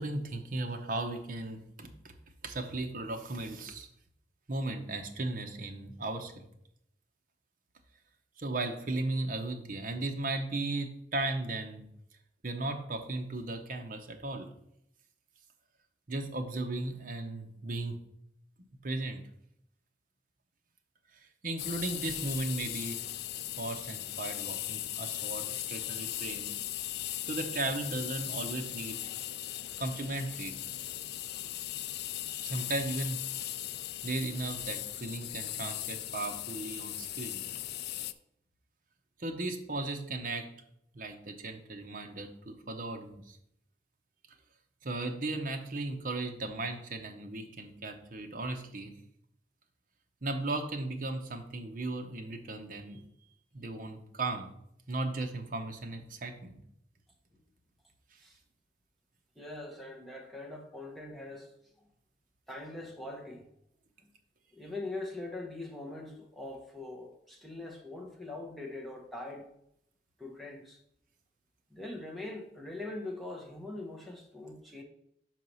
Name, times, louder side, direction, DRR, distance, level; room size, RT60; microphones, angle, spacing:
voice 1, 0.0-2.2 2.4-3.9 4.5-6.5 8.4-11.9 12.4-14.5 16.1-18.0 18.8-19.2 21.1-23.0 23.6-26.5 27.2-29.0 29.8-30.5 32.4-33.2 34.0-37.4 39.2-40.5 40.9-43.4 44.8-48.9 50.2-53.0 53.5-54.5 54.9-56.6, right 2 dB, 50° right, 0.8 m, -36 dB
sound 1, 21.6-38.1, left 13 dB, 60° left, 0.3 m, -38 dB
voice 2, 59.4-61.5 62.5-63.5 64.5-69.5 70.2-70.8 71.7-74.8, left 2 dB, ahead, 1.0 m, -42 dB
5.7 x 4.6 x 5.4 m
head